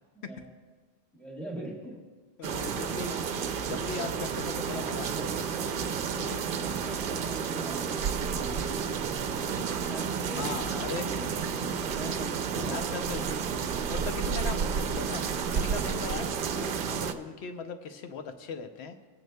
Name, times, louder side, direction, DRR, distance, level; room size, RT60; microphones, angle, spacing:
voice 1, 0.1-0.5 1.1-2.0 6.1-8.8 9.4-10.8 11.5-12.8, right 1 dB, ahead, -3 dB, 1.5 m, -44 dB
voice 2, 2.4-3.2 3.7-5.7 10.3-11.5 12.6-13.4 13.6-15.2 15.5-18.9, left 5 dB, 85° left, 7 dB, 0.9 m, -39 dB
sound 1, 2.4-17.1, right 6 dB, 60° right, 0.7 m, -31 dB
21.5 x 9.1 x 2.2 m, 1.4 s
omnidirectional pair, 1.1 m